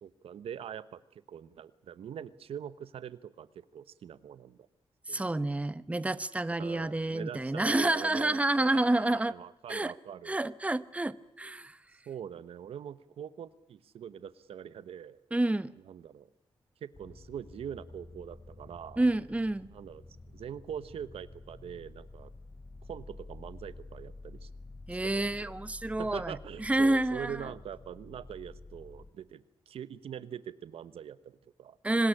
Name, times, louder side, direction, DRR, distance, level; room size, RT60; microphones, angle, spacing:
voice 1, 0.0-4.7 5.1-5.4 6.6-10.4 12.1-15.2 15.8-16.3 16.8-19.0 19.7-20.0 20.3-22.3 22.9-24.5 24.9-25.5 26.0-31.8, right 9 dB, 90° right, 15 dB, 1.1 m, -43 dB
voice 2, 5.1-9.3 9.7-9.9 10.3-11.8 15.3-15.7 19.0-19.7 24.9-27.5 31.8-32.1, right 2 dB, 15° right, 15 dB, 1.0 m, -29 dB
sound 1, 16.9-29.1, left 2 dB, 30° left, 3.8 m, -50 dB
25.5 x 20.0 x 10.0 m, 0.77 s
cardioid pair, 95°, 10 cm